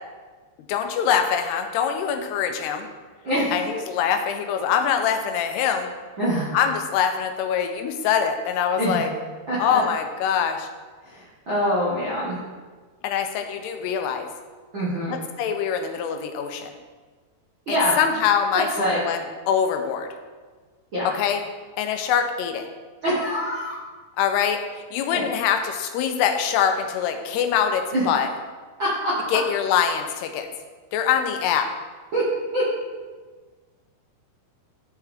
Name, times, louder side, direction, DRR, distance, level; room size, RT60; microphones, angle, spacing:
voice 1, 0.7-2.9 3.5-5.9 6.5-9.1 9.6-10.7 13.0-14.3 15.1-16.7 17.7-19.2 19.5-20.1 21.2-21.4 21.8-22.6 24.2-24.6 24.9-28.3 29.3-30.5 30.9-31.7, left 8 dB, 90° left, 5 dB, 2.8 m, -24 dB
voice 2, 6.2-6.5 8.8-9.0 9.5-9.8 11.0-12.4 14.7-15.2 17.7-18.0 18.5-19.0 20.9-21.1 23.0-23.8 25.1-25.2 27.3-27.4 27.9-28.0 28.8-29.1 32.1-32.2 32.5-32.6, equal, 70° right, -9 dB, 1.1 m, -24 dB
11.5 x 4.5 x 3.6 m, 1.4 s
omnidirectional pair, 4.6 m